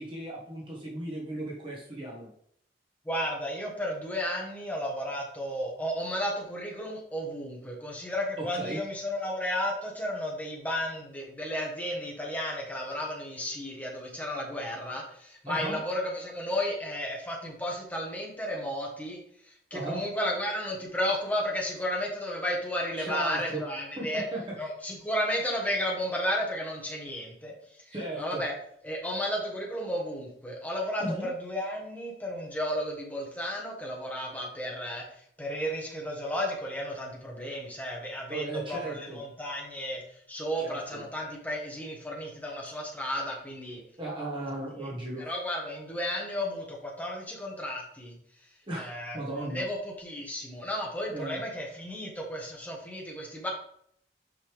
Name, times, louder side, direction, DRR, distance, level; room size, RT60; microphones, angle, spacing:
voice 1, 0.0-2.3 8.4-8.8 15.5-15.8 19.7-20.0 23.0-23.6 24.0-24.4 27.9-28.4 31.0-31.3 38.3-39.2 40.6-41.0 44.0-45.2 48.7-49.6 51.1-51.4, right 2 dB, 30° right, -4 dB, 1.3 m, -36 dB
voice 2, 3.0-19.2 19.4-24.2 24.6-27.5 27.9-28.6 28.8-35.0 35.4-40.0 40.3-43.8 44.8-44.9 45.2-48.1 48.8-53.5, equal, 10° left, -1 dB, 1.3 m, -33 dB
6.2 x 5.3 x 3.4 m, 0.67 s
head